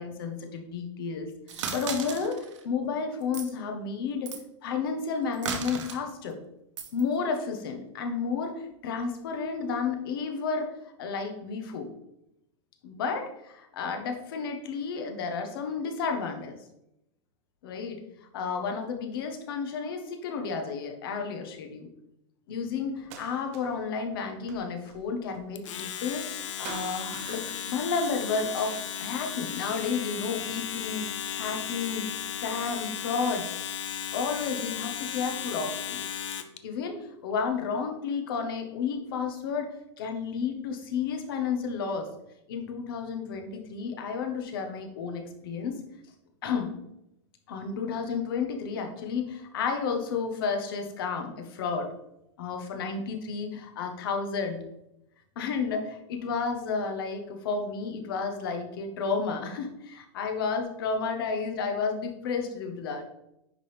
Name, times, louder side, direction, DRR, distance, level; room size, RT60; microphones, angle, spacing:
voice 1, 0.0-2.4 2.6-4.3 4.6-6.4 6.9-11.9 12.8-16.6 17.6-18.0 18.3-21.9 22.5-31.1 31.4-32.1 32.4-33.5 34.1-36.0 36.6-42.1 42.5-45.8 46.4-46.7 47.5-51.9 52.4-54.6 55.4-63.0, left 5 dB, 50° left, 4 dB, 1.1 m, -32 dB
sound 1, 1.5-2.6 3.2-3.5 4.3-4.4 5.3-6.0 6.8-7.0, right 6 dB, 85° right, 1.2 m, -35 dB
sound 2, 22.9-23.9 24.2-26.4 26.6-28.0 28.4-30.3 30.9-31.8 32.8-32.9 33.5-34.5, right 7 dB, 30° right, 0.6 m, -48 dB
Domestic sounds home sounds, 25.6-36.6, left 9 dB, 90° left, 0.7 m, -35 dB
10.0 x 3.7 x 3.3 m, 0.84 s
supercardioid pair, 175°, 15 cm